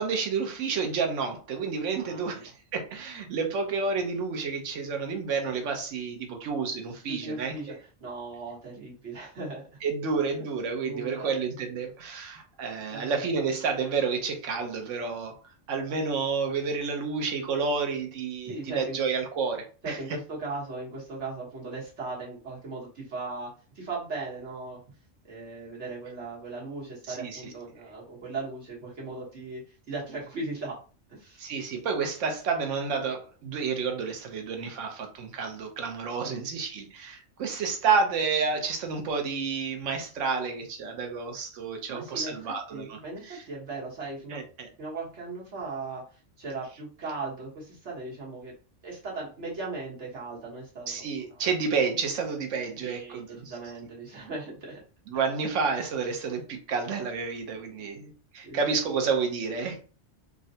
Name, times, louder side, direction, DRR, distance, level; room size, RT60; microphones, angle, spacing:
voice 1, 0.0-7.5 9.8-15.4 15.7-20.0 27.1-27.5 31.4-43.4 44.3-44.7 50.9-53.5 55.1-59.8, right 5 dB, 90° right, 1.1 m, -30 dB
voice 2, 2.0-2.5 7.1-7.7 8.0-9.8 10.3-10.5 10.8-11.3 12.9-13.2 18.4-19.0 19.8-24.8 25.3-30.8 31.1-31.4 36.2-36.4 41.9-44.4 44.8-46.0 46.4-48.5 48.8-50.9 51.3-51.5 52.8-54.8 55.1-55.2 58.4-58.6, right 3 dB, 70° right, 1.5 m, -38 dB
3.6 x 2.1 x 2.7 m
omnidirectional pair, 1.2 m